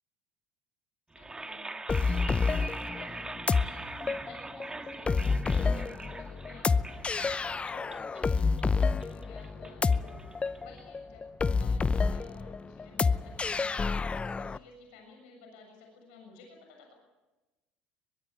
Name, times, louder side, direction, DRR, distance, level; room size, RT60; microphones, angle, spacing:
sound 1, 1.1-11.2, right 2 dB, 15° right, 2.0 m, -43 dB
voice 1, 1.2-16.9, left 4 dB, 80° left, 2 dB, 7.0 m, -54 dB
sound 2, 1.9-14.6, left 4 dB, 25° left, 0.7 m, -29 dB
23.5 x 21.5 x 8.4 m, 1.1 s
hypercardioid pair, 75°, 5 cm